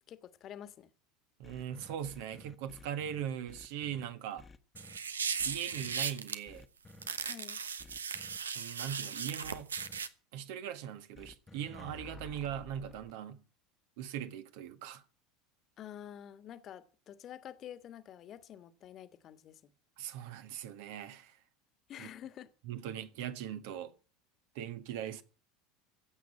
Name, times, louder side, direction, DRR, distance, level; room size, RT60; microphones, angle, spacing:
voice 1, 0.1-0.9 7.3-7.6 15.8-19.7 21.9-22.5, left 10 dB, 40° left, 1.6 m, -48 dB
sound 1, 1.4-4.0 4.4-5.0 5.4-5.9 6.5-7.1 7.8-8.4 9.4-10.0 11.1-13.1, left 3 dB, 20° left, 1.3 m, -53 dB
voice 2, 1.4-4.5 5.4-6.7 8.5-9.7 10.3-13.4 14.0-15.0 20.0-21.4 22.0-22.1 22.7-23.9 24.5-25.2, right 9 dB, 55° right, 1.6 m, -40 dB
sound 2, 4.8-6.4 7.0-10.1, right 6 dB, 75° right, 1.1 m, -37 dB
16.0 x 8.3 x 9.7 m
figure-of-eight pair, 75°, 0 cm